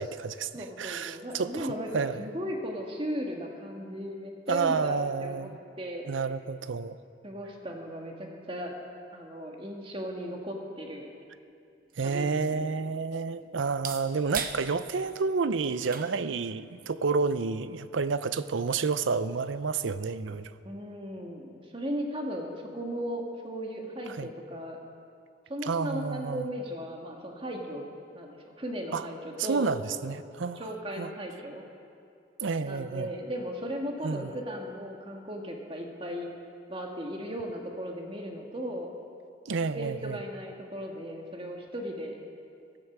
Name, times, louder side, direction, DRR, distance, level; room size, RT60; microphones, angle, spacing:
voice 1, 0.0-2.2 4.5-5.6 6.1-7.0 12.0-20.5 24.2-24.3 25.6-26.5 28.9-29.0 29.4-30.6 31.0-31.1 32.4-33.1 34.0-34.3 39.5-40.2, right 4 dB, 80° right, 0.6 m, -30 dB
voice 2, 0.5-1.9 2.2-5.5 5.8-6.1 7.2-8.7 9.1-11.1 12.0-12.7 20.6-24.8 25.5-27.9 28.1-29.7 30.5-31.6 32.6-36.3 36.7-38.9 39.5-42.2, equal, 30° right, 1.7 m, -36 dB
sound 1, 11.3-19.3, right 7 dB, 45° right, 0.9 m, -44 dB
16.0 x 13.0 x 6.0 m
head